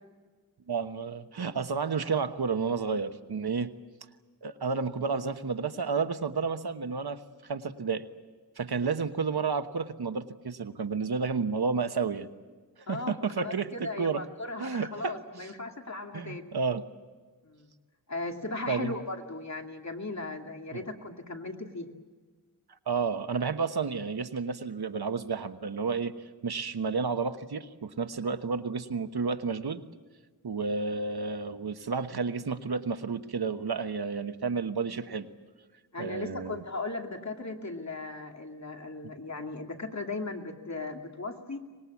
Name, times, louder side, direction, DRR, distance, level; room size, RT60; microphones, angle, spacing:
voice 1, 0.7-3.7 4.4-8.0 8.6-12.3 12.9-14.2 14.6-15.5 16.1-16.8 18.7-18.9 20.7-20.8 22.9-26.1 26.4-29.8 30.4-35.3 36.0-36.6, right 5 dB, 75° right, 9 dB, 1.2 m, -31 dB
voice 2, 12.9-16.4 17.4-17.7 18.1-21.9 35.9-41.6, left 2 dB, 45° left, 3 dB, 2.5 m, -37 dB
24.5 x 20.5 x 8.5 m, 1.4 s
wide cardioid pair, 80°, 38 cm